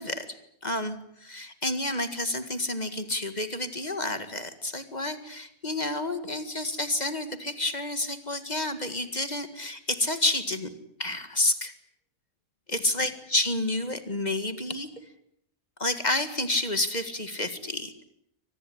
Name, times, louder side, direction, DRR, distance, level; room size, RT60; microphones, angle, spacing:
voice 1, 0.0-10.7 11.0-11.7 12.7-14.9 15.8-18.0, left 2 dB, 30° left, 9 dB, 2.0 m, -30 dB
24.5 x 19.5 x 10.0 m, 0.72 s
omnidirectional pair, 1.5 m